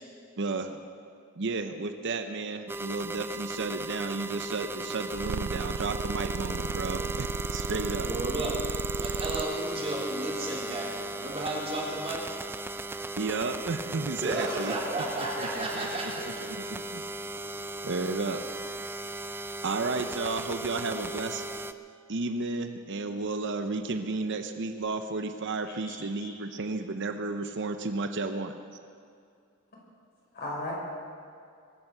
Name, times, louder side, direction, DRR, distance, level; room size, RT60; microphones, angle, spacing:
voice 1, 0.4-0.8 1.4-8.1 13.2-14.8 15.2-17.0 17.8-18.4 19.6-21.4 22.1-28.5, right 3 dB, 60° right, 7 dB, 0.8 m, -33 dB
sound 1, 2.7-21.7, right 1 dB, 10° right, 0.3 m, -37 dB
sound 2, 5.1-9.5, right 6 dB, 75° right, 0.4 m, -34 dB
voice 2, 8.0-8.6 9.0-12.2 14.2-16.2, right 2 dB, 30° right, -4 dB, 3.5 m, -33 dB
voice 3, 25.9-26.3 30.3-30.7, left 2 dB, 45° left, -3 dB, 5.0 m, -37 dB
22.5 x 9.4 x 6.7 m, 2.3 s
head